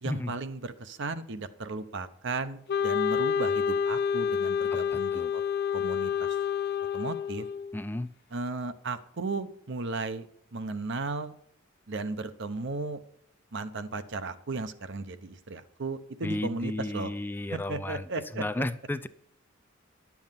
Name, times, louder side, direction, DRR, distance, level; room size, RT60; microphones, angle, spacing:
voice 1, 0.0-5.4 5.7-6.4 6.9-7.5 8.3-11.3 11.9-13.0 13.5-17.1 17.5-18.4, right 3 dB, 65° right, 10 dB, 0.8 m, -35 dB
Wind instrument woodwind instrument, 2.7-7.8, left 7 dB, 55° left, 0.6 m, -28 dB
voice 2, 4.9-5.3 7.7-8.1 16.2-18.0 18.4-19.1, left 1 dB, 10° left, 11 dB, 0.4 m, -33 dB
10.5 x 7.2 x 5.7 m, 0.70 s
head